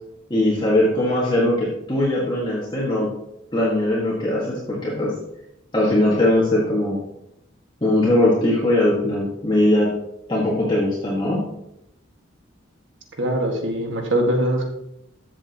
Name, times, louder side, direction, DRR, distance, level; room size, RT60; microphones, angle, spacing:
voice 1, 0.3-3.1 3.5-5.2 5.7-7.0 7.8-9.9 10.3-11.4, left 1 dB, 25° left, -5 dB, 1.9 m, -20 dB
voice 2, 13.2-14.7, right 1 dB, 70° right, 1 dB, 1.9 m, -22 dB
13.5 x 7.3 x 3.0 m, 0.81 s
head